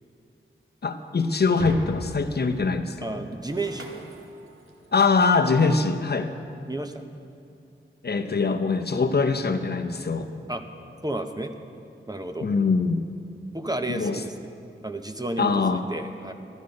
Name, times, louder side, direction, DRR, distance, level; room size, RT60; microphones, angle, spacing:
voice 1, 0.8-3.2 4.9-6.3 8.0-10.3 12.4-13.0 13.9-14.2 15.4-15.8, left 4 dB, 50° left, 7 dB, 0.7 m, -23 dB
Shatter, 1.5-4.9, right 1 dB, 90° right, 1.2 m, -38 dB
voice 2, 3.0-3.9 6.7-7.0 10.5-10.6 11.0-11.5 12.1-12.5 13.5-14.5 14.8-16.3, right 2 dB, 20° right, 6 dB, 0.7 m, -31 dB
12.5 x 12.5 x 5.2 m, 2.6 s
wide cardioid pair, 75°, 21 cm